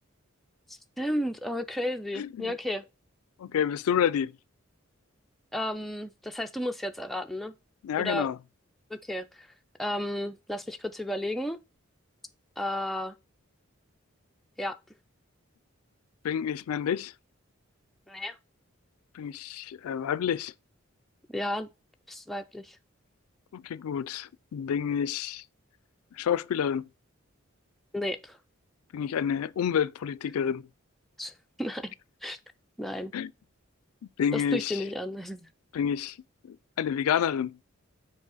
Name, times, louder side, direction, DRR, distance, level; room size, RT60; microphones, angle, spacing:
voice 1, 0.7-2.8 5.5-7.5 8.0-8.3 8.9-9.5 9.8-11.6 12.6-13.1 14.6-14.8 18.1-18.4 21.3-21.7 22.1-22.8 27.9-28.4 31.2-31.3 31.6-31.9 32.2-32.4 32.8-33.1 34.3-35.5, left 1 dB, ahead, 0.3 m, -33 dB
voice 2, 2.2-2.5 3.4-4.3 7.8-8.4 16.2-17.1 19.1-20.5 23.5-25.4 26.2-26.9 28.9-30.7 33.1-33.3 34.2-34.8 35.7-36.2 36.4-37.6, left 8 dB, 90° left, 0.3 m, -29 dB
6.1 x 4.1 x 4.0 m
head